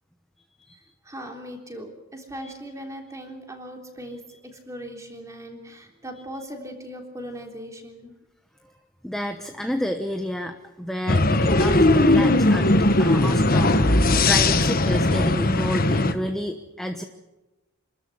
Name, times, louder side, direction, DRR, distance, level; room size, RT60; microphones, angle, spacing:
voice 1, 0.8-8.2, equal, 15° right, 2 dB, 3.5 m, -39 dB
voice 2, 9.0-17.0, equal, ahead, 5 dB, 1.0 m, -30 dB
sound 1, 11.1-16.1, left 2 dB, 40° left, 1.3 m, -19 dB
27.5 x 13.5 x 9.8 m, 1.1 s
head